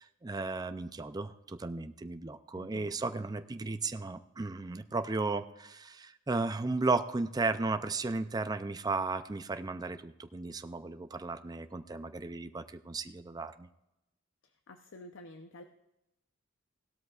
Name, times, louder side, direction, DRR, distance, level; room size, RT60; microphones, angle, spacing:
voice 1, 0.0-13.7, right 3 dB, 20° right, 9 dB, 0.4 m, -35 dB
voice 2, 2.5-2.9 14.7-15.6, left 1 dB, 65° left, 7 dB, 0.7 m, -50 dB
17.0 x 12.5 x 2.4 m, 0.89 s
head